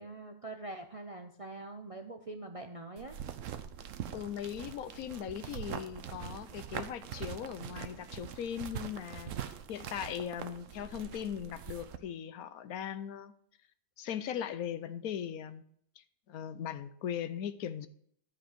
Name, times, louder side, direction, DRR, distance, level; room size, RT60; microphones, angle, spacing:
voice 1, 0.0-3.2, right 2 dB, 40° right, 0.5 m, -44 dB
squeeze fake leather, 3.0-12.0, right 9 dB, 65° right, 1.0 m, -43 dB
voice 2, 4.1-13.3 14.0-15.6 16.0-17.9, left 9 dB, 80° left, 1.1 m, -39 dB
11.5 x 5.3 x 6.6 m
omnidirectional pair, 1.5 m